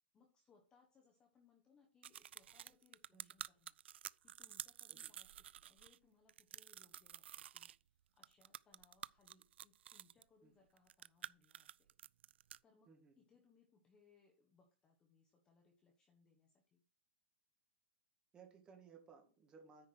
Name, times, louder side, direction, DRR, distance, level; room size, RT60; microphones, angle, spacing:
voice 1, 0.1-3.7 4.2-11.9 12.6-12.9 13.2-16.8, left 4 dB, 15° left, 2 dB, 1.1 m, -72 dB
sound 1, 2.0-6.0 6.3-7.8 8.2-10.2 10.8-12.6, right 11 dB, 80° right, 0.4 m, -51 dB
voice 2, 12.9-13.2 18.3-19.9, right 6 dB, 15° right, 4 dB, 1.8 m, -61 dB
9.8 x 4.6 x 6.3 m, 0.38 s
supercardioid pair, 170°, 6 cm